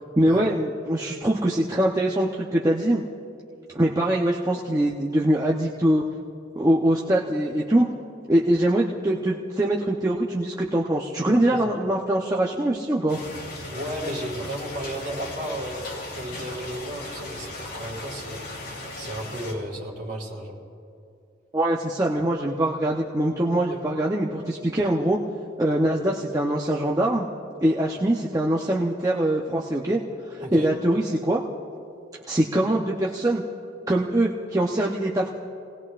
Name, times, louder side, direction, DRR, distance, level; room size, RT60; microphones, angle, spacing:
voice 1, 0.2-3.0 3.7-6.0 6.6-7.9 8.3-13.2 21.5-25.2 25.6-27.3 27.6-30.0 30.3-31.4 32.3-33.4 33.9-35.3, right 1 dB, 20° right, -3 dB, 0.8 m, -23 dB
sound 1, 13.1-19.5, left 2 dB, 50° left, 3.7 m, -37 dB
voice 2, 13.7-15.7 16.1-18.4 18.9-20.6 23.7-23.8 30.4-30.7, right 1 dB, 45° right, -5 dB, 4.7 m, -34 dB
30.0 x 19.0 x 2.5 m, 2.5 s
head